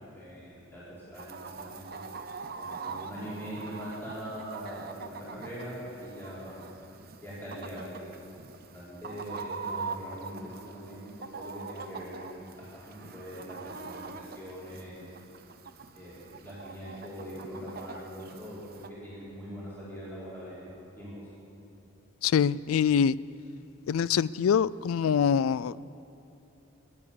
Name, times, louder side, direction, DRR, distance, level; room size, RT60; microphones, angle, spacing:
voice 1, 0.1-0.8 1.1-2.0 2.5-6.6 7.2-8.1 8.7-12.4 12.7-13.5 13.8-15.1 15.9-20.7 21.0-21.1, equal, 10° left, -10 dB, 4.3 m, -42 dB
Chicken rooster, 1.1-18.9, right 4 dB, 45° right, 0.7 m, -43 dB
voice 2, 22.2-23.2 23.9-25.8, left 7 dB, 80° left, 20 dB, 0.3 m, -24 dB
18.5 x 11.0 x 7.0 m, 2.9 s
head